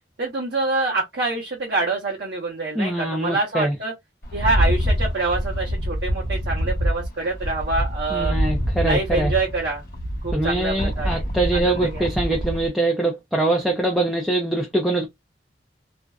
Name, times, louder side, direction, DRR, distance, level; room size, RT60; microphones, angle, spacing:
voice 1, 0.2-3.9 4.3-8.3 8.8-9.8 10.2-11.2 11.5-12.0, right 3 dB, 65° right, 0.8 m, -26 dB
voice 2, 2.8-3.7 8.1-9.3 10.3-15.1, right 2 dB, ahead, 0.4 m, -23 dB
Rattle, 4.2-12.7, equal, 55° left, 1.0 m, -25 dB
2.5 x 2.1 x 2.3 m
head